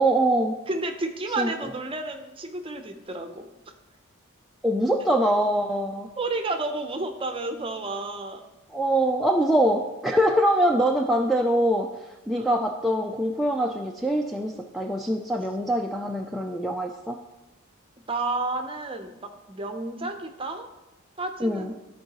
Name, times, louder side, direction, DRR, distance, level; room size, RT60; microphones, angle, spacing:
voice 1, 0.0-0.6 1.4-1.5 4.6-6.1 8.7-11.9 12.3-17.2 21.4-21.7, right 1 dB, ahead, -1 dB, 0.3 m, -23 dB
voice 2, 0.7-3.4 6.2-8.4 12.3-12.5 18.1-19.1 19.5-20.7 21.2-21.8, right 2 dB, 25° right, 6 dB, 0.7 m, -31 dB
13.5 x 4.6 x 2.9 m, 1.1 s
head